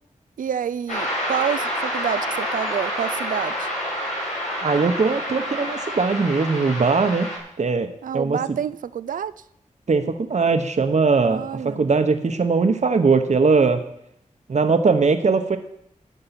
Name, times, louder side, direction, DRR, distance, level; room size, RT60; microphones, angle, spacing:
voice 1, 0.4-3.7 8.0-9.3 11.2-11.8, right 8 dB, 90° right, 15 dB, 0.4 m, -28 dB
sound 1, 0.9-7.4, equal, 70° left, 4.3 m, -28 dB
voice 2, 4.6-7.3 7.6-7.9 8.1-8.6 9.9-13.9 14.5-15.6, right 4 dB, 60° right, 7 dB, 1.0 m, -20 dB
12.0 x 6.6 x 5.9 m, 0.72 s
cardioid pair, 55°, 13 cm